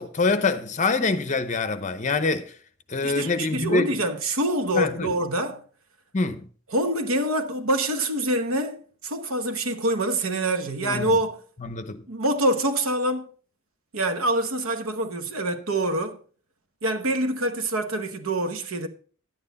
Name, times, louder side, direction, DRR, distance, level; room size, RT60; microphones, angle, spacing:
voice 1, 0.0-2.5 2.9-3.9 4.7-5.1 6.1-6.5 10.8-11.2 11.6-12.0, left 3 dB, 35° left, 0.8 m, -25 dB
voice 2, 3.0-5.6 6.7-11.4 12.1-13.2 13.9-16.2 16.8-18.9, right 1 dB, 80° right, 1.1 m, -25 dB
10.5 x 9.3 x 4.0 m
head